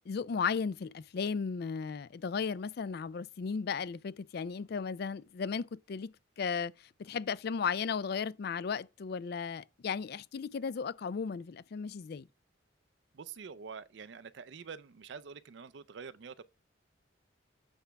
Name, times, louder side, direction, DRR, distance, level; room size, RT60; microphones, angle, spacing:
voice 1, 0.1-6.7 7.0-12.3, left 6 dB, 55° left, 0.4 m, -35 dB
voice 2, 13.1-16.4, right 6 dB, 65° right, 0.5 m, -46 dB
8.0 x 3.4 x 5.8 m
head